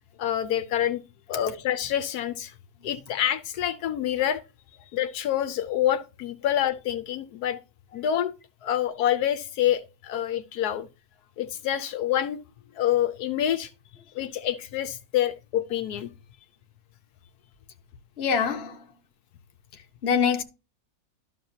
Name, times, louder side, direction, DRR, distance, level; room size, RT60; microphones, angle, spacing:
voice 1, 0.2-1.0 1.3-2.5 2.8-4.4 4.9-7.6 7.9-8.3 8.6-10.9 11.4-12.4 12.7-13.7 14.1-16.1, left 11 dB, 80° left, 1.2 m, -27 dB
voice 2, 18.2-18.9 19.7-20.4, left 6 dB, 45° left, 1.1 m, -25 dB
12.5 x 5.8 x 2.8 m
omnidirectional pair, 1.7 m